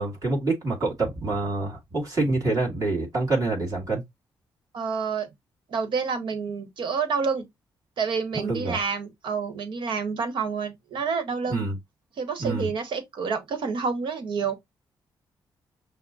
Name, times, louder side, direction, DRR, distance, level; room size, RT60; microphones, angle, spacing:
voice 1, 0.0-4.0 8.3-8.8 11.5-11.8 12.4-12.7, right 3 dB, 45° right, 2.5 m, -26 dB
voice 2, 4.7-5.3 5.7-7.5 8.0-11.6 12.2-14.5, right 5 dB, 75° right, 1.2 m, -28 dB
5.8 x 2.1 x 4.0 m
cardioid pair, 75°, 8 cm